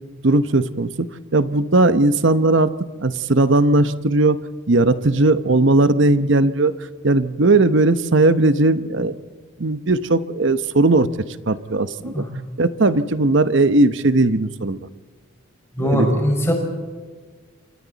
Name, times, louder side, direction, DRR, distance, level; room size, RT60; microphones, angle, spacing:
voice 1, 0.2-2.7 3.0-4.4 4.7-6.7 7.0-9.2 9.6-11.1 11.5-12.2 12.6-14.8 15.8-16.1, right 2 dB, 60° right, 12 dB, 0.9 m, -17 dB
voice 2, 15.8-16.5, equal, 10° left, 1 dB, 5.3 m, -20 dB
28.5 x 25.5 x 4.1 m, 1.5 s
head